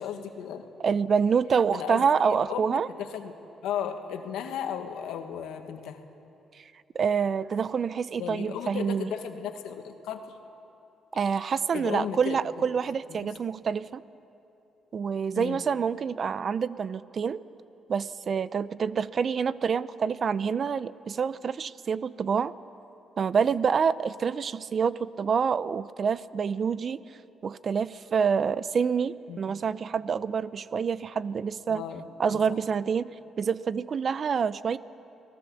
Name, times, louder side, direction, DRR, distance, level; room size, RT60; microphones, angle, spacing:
voice 1, 0.0-0.7 1.7-2.0 2.5-3.3 3.6-6.0 8.2-10.4 11.7-12.4 13.1-13.3 15.3-15.6 29.3-29.4 31.7-32.6, left 8 dB, 90° left, 6 dB, 1.7 m, -35 dB
voice 2, 0.8-2.9 6.5-6.6 6.9-9.1 11.1-14.0 14.9-17.4 17.9-22.5 23.2-27.0 27.4-31.8 32.2-34.8, right 6 dB, 50° right, 16 dB, 0.6 m, -27 dB
29.5 x 19.5 x 7.1 m, 2.8 s
cardioid pair, 90°, 0 cm